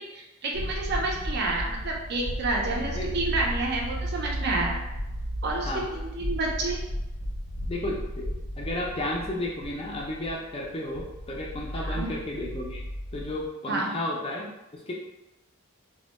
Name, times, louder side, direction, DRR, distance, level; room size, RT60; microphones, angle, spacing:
voice 1, 0.0-4.8 5.4-6.8 11.8-12.1 13.7-13.9, right 2 dB, 50° right, -1 dB, 0.4 m, -29 dB
sound 1, 0.5-13.5, equal, 85° left, 0.7 m, -34 dB
voice 2, 2.7-3.2 5.6-5.9 7.7-12.8 13.1-14.5 14.7-14.9, left 1 dB, 25° left, -2 dB, 0.4 m, -33 dB
2.1 x 2.0 x 3.0 m, 0.96 s
head